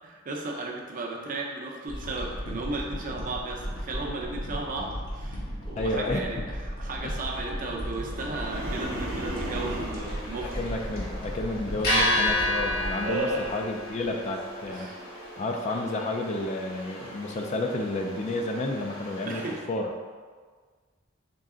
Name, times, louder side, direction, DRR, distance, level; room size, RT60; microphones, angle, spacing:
voice 1, 0.0-10.6 13.0-13.5 14.7-15.0 19.3-19.6, right 2 dB, 45° right, 0 dB, 0.6 m, -35 dB
sound 1, 1.9-14.2 14.7-14.8, equal, 75° left, 1.1 m, -36 dB
voice 2, 5.8-6.2 7.0-7.1 10.4-14.9 15.4-19.4 19.7-19.9, left 2 dB, 35° left, 3 dB, 0.4 m, -31 dB
sound 2, 8.0-10.2, right 1 dB, 80° right, 0.7 m, -35 dB
sound 3, 8.5-19.5, left 1 dB, 50° left, 1.2 m, -33 dB
3.8 x 3.2 x 3.7 m, 1.5 s
head